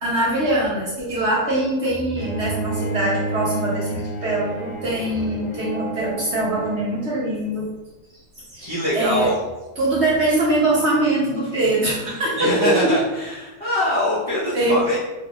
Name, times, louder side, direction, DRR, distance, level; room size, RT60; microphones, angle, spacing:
voice 1, 0.0-7.7 8.3-9.3 9.8-12.9 14.5-14.8, right 1 dB, 55° right, -6 dB, 0.8 m, -22 dB
Bowed string instrument, 2.2-7.2, right 2 dB, 70° left, 0.4 m, -30 dB
voice 2, 8.6-9.4 12.4-15.0, left 1 dB, 30° left, -9 dB, 0.7 m, -23 dB
2.8 x 2.3 x 3.8 m, 1.1 s
omnidirectional pair, 1.6 m